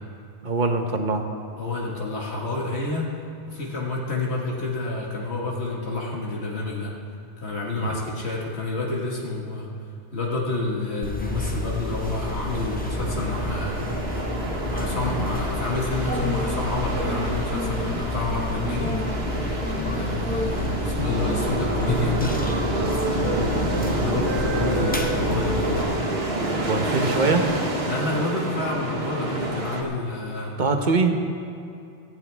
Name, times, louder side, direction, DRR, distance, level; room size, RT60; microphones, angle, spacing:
voice 1, 0.4-1.3 7.9-8.0 25.8-25.9 26.7-27.5 30.6-31.1, right 3 dB, 45° right, 4 dB, 1.2 m, -23 dB
voice 2, 1.6-3.1 3.5-6.9 7.4-9.7 10.1-13.9 14.7-18.9 19.9-22.4 23.1-26.0 27.9-30.5, left 2 dB, 70° left, -3 dB, 2.1 m, -29 dB
sound 1, 11.0-25.8, left 2 dB, 10° left, 0.8 m, -30 dB
sound 2, 11.2-29.8, right 1 dB, 65° right, 1.7 m, -29 dB
Wind instrument woodwind instrument, 20.5-23.9 24.2-28.1, right 2 dB, 10° right, 1.2 m, -33 dB
18.0 x 14.0 x 3.5 m, 2.7 s
omnidirectional pair, 1.1 m